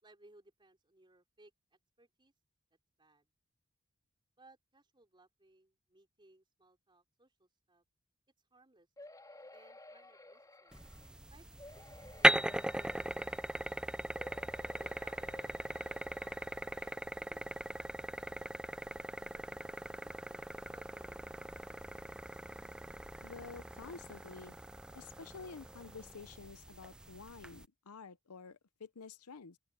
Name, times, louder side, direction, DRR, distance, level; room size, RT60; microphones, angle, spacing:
voice 1, 0.0-1.5 2.0-2.3 3.0-3.3 4.4-7.8 8.5-8.9 9.5-10.9 11.3-14.0 14.6-15.3 16.8-21.8, right 2 dB, 20° right, 4.2 m, -65 dB
sound 1, 9.0-11.1 11.6-13.8 14.1-17.0 17.6-17.7 18.0-18.1, left 2 dB, 15° left, 3.9 m, -56 dB
sound 2, 10.7-27.6, right 1 dB, 5° right, 0.4 m, -38 dB
voice 2, 23.2-24.6 24.9-29.6, left 4 dB, 85° left, 0.8 m, -50 dB
open air
head